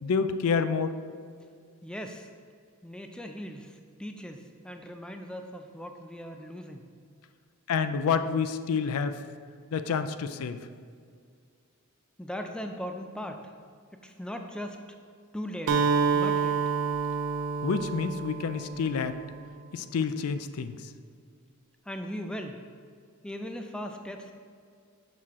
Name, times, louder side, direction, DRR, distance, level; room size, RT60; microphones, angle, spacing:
voice 1, 0.0-1.0 7.7-9.2 9.7-10.6 17.6-19.2 19.7-20.8, left 5 dB, 80° left, 10 dB, 0.4 m, -28 dB
voice 2, 1.8-2.3 2.8-6.9 12.2-13.4 14.0-14.8 15.3-15.8 16.1-16.6 21.9-22.6 23.2-24.3, equal, 5° left, 4 dB, 0.3 m, -38 dB
Acoustic guitar, 15.7-19.5, right 5 dB, 80° right, 0.5 m, -28 dB
6.6 x 5.8 x 3.6 m, 2.1 s
head